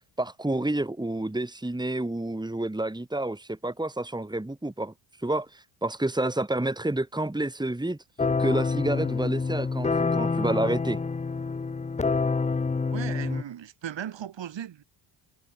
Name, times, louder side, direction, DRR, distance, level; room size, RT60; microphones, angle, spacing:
voice 1, 0.2-4.9 5.2-8.0 8.4-11.0, right 1 dB, 10° right, 4.1 m, -29 dB
sound 1, 8.2-13.4, left 4 dB, 15° left, 0.7 m, -27 dB
voice 2, 12.9-14.8, right 10 dB, 60° right, 7.3 m, -37 dB
cardioid pair, 85°, 49 cm